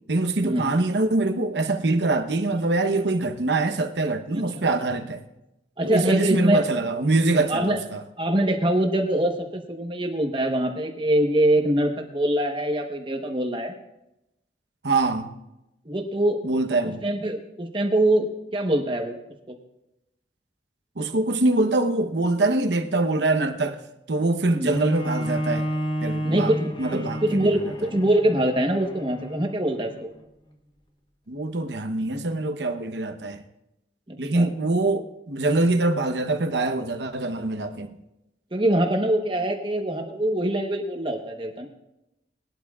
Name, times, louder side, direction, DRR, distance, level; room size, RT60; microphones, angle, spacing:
voice 1, 0.1-5.2 5.8-8.0 14.8-15.3 16.4-17.0 21.0-23.8 24.1-25.7 26.0-26.5 26.8-27.6 31.3-33.4 34.2-37.9, right 2 dB, 80° right, 0.9 m, -24 dB
voice 2, 5.8-6.6 7.5-7.8 8.2-13.7 15.9-16.4 16.8-19.2 19.5-19.6 24.5-24.7 26.2-30.1 34.1-34.5 38.5-41.7, right 1 dB, 30° right, 1.1 m, -24 dB
Bowed string instrument, 24.7-29.9, equal, 25° left, 1.1 m, -31 dB
20.5 x 12.0 x 2.4 m
head